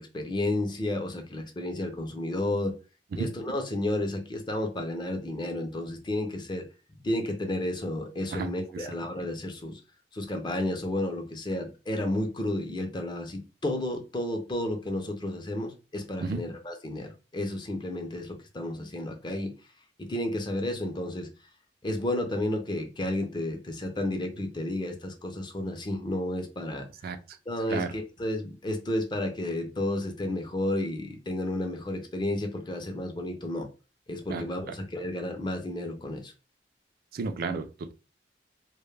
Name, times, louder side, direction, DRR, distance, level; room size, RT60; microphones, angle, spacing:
voice 1, 0.0-2.7 3.2-6.6 7.0-9.8 10.1-19.5 20.0-21.3 21.8-26.9 27.5-33.7 34.1-36.3, left 1 dB, 25° left, 0.5 m, -32 dB
voice 2, 34.3-34.7 37.1-37.9, right 4 dB, 55° right, 0.3 m, -32 dB
2.2 x 2.1 x 3.1 m
head